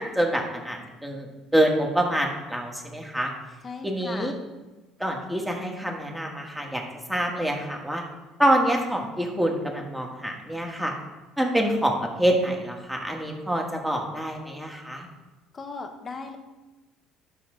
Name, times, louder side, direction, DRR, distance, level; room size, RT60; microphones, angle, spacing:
voice 1, 0.0-3.3 3.8-4.3 5.0-6.8 7.1-8.0 8.4-10.9 11.4-15.1, right 1 dB, 5° right, 1 dB, 1.5 m, -26 dB
voice 2, 3.6-4.3 15.5-16.4, left 4 dB, 30° left, 5 dB, 1.1 m, -37 dB
10.5 x 6.0 x 3.8 m, 1.1 s
cardioid pair, 115°, 0 cm